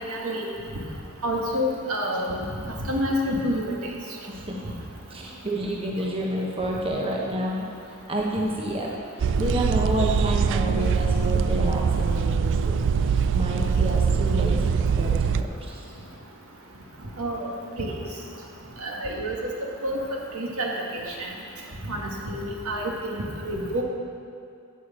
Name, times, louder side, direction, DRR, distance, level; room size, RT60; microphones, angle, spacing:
voice 1, 0.1-0.5 1.2-2.4 2.9-3.7 17.2-17.5 17.8-17.9 18.8-19.4 19.8-20.0 20.3-21.3 21.9-23.8, equal, 70° right, -1 dB, 1.9 m, -28 dB
voice 2, 4.3-4.7 5.1-7.7 8.1-8.9 9.4-14.6 15.0-15.8, right 1 dB, 25° right, -2 dB, 1.1 m, -29 dB
sound 1, 9.2-15.4, right 5 dB, 55° right, 0.3 m, -23 dB
9.3 x 9.0 x 7.5 m, 2.4 s
head